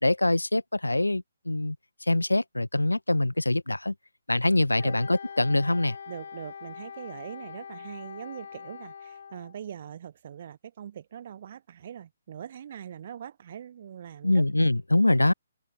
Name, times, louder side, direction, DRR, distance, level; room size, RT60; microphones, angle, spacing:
voice 1, 0.0-1.8 2.1-3.9 4.3-6.0 14.2-15.3, left 2 dB, 85° left, 1.2 m, -24 dB
Wind instrument woodwind instrument, 4.8-9.6, left 7 dB, 55° left, 2.6 m, -43 dB
voice 2, 6.1-14.7, right 9 dB, 45° right, 1.4 m, -42 dB
open air
figure-of-eight pair, 135°, 0 cm